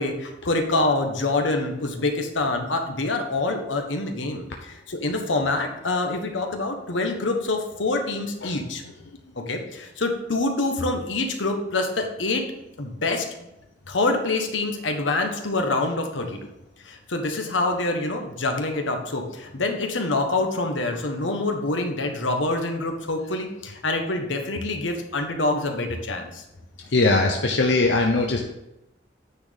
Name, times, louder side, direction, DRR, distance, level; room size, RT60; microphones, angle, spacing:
voice 1, 0.0-8.8 9.4-12.4 12.8-13.3 13.9-16.4 16.8-26.4, left 2 dB, 90° left, 4 dB, 1.3 m, -26 dB
voice 2, 26.9-28.4, left 3 dB, 70° left, 1 dB, 0.8 m, -20 dB
9.4 x 4.3 x 5.2 m, 0.88 s
head